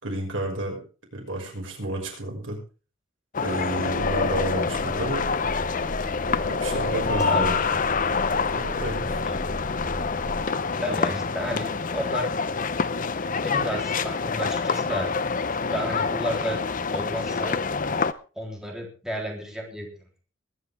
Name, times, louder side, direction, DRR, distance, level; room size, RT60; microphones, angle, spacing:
voice 1, 0.0-0.8 1.1-2.6 3.4-5.3 6.4-7.6 8.5-9.1, right 1 dB, 80° right, 1 dB, 6.0 m, -31 dB
sound 1, 3.3-18.1, left 4 dB, 45° left, 0.8 m, -26 dB
sound 2, 3.8-10.4, equal, 25° right, 7.1 m, -37 dB
voice 2, 7.3-7.8 9.2-9.3 10.8-12.3 13.4-15.1 15.7-16.6 16.9-17.6 18.4-20.2, equal, 5° right, 0 dB, 3.6 m, -32 dB
22.0 x 10.5 x 3.6 m, 0.35 s
head